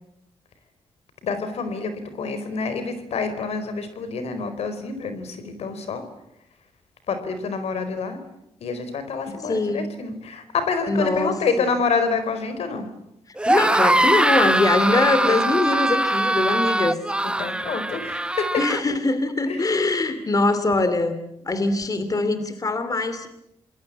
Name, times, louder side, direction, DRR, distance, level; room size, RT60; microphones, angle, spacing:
voice 1, 1.2-6.0 7.1-8.2 8.6-12.9 14.8-15.4 17.4-18.6 19.5-20.1, left 5 dB, 80° left, 10 dB, 4.5 m, -27 dB
voice 2, 9.5-9.9 10.9-11.7 13.5-17.0 18.6-21.2 21.5-23.3, left 2 dB, 35° left, 11 dB, 2.6 m, -22 dB
sound 1, 13.4-18.8, right 1 dB, 10° right, 1.1 m, -21 dB
28.5 x 21.5 x 8.7 m, 0.82 s
cardioid pair, 95°, 10 cm